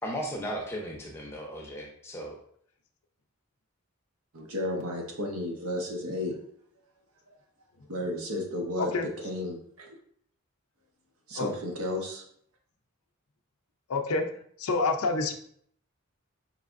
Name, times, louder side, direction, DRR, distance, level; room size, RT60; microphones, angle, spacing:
voice 1, 0.0-2.4, equal, 10° left, -1 dB, 0.6 m, -36 dB
voice 2, 4.3-6.4 7.9-10.0 11.3-12.2, left 1 dB, 80° right, 1 dB, 1.0 m, -33 dB
voice 3, 13.9-14.2 14.6-15.3, left 3 dB, 80° left, 6 dB, 0.5 m, -27 dB
4.7 x 3.3 x 2.5 m, 0.63 s
head